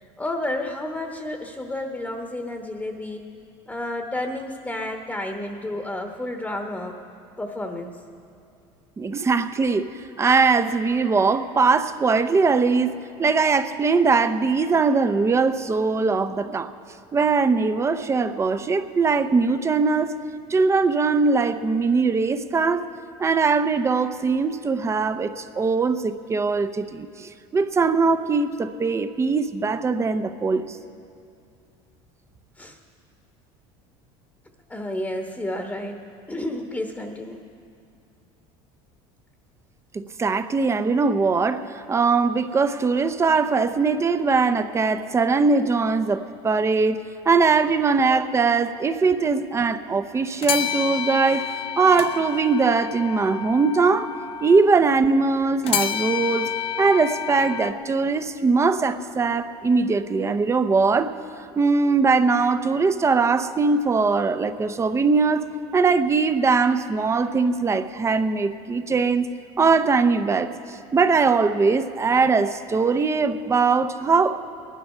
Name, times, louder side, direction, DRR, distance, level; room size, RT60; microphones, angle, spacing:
voice 1, 0.2-3.3 3.7-7.0 7.4-8.0 32.6-32.8 34.7-36.0 36.3-37.4 47.6-47.7, left 1 dB, 10° left, 3 dB, 1.1 m, -31 dB
voice 2, 9.0-9.9 10.2-16.7 17.1-20.2 20.5-22.9 23.2-30.8 39.9-54.1 54.4-61.1 61.6-65.5 65.7-69.3 69.6-74.5, right 4 dB, 20° right, 11 dB, 0.6 m, -21 dB
sound 1, 50.4-54.6 55.6-57.7, left 9 dB, 45° left, 0.6 m, -29 dB
19.0 x 11.0 x 5.6 m, 2.4 s
supercardioid pair, 110°, 13 cm